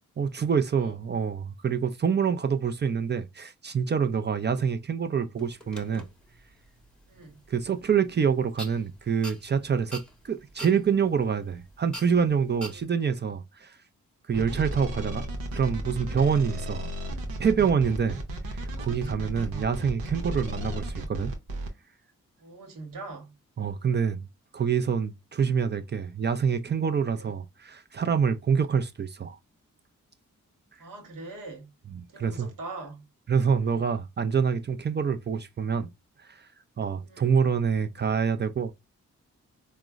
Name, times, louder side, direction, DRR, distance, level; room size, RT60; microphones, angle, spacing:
voice 1, 0.2-6.1 7.5-13.8 14.3-15.3 15.5-16.9 17.4-18.2 18.5-21.3 23.6-24.3 24.5-29.4 31.9-32.5 33.3-35.9 36.3-36.5 36.8-38.7, right 6 dB, 30° right, 0.4 m, -26 dB
sound 1, 5.4-12.9, right 1 dB, 5° left, 0.9 m, -47 dB
voice 2, 7.1-7.4 12.7-12.9 16.5-16.6 19.3-19.6 22.4-23.3 27.2-27.3 30.8-31.7 32.1-33.0 33.7-33.8 37.1-37.3, right 3 dB, 70° right, 1.1 m, -42 dB
sound 2, 14.3-21.7, equal, 90° right, 0.7 m, -34 dB
3.7 x 2.0 x 2.3 m
supercardioid pair, 45°, 34 cm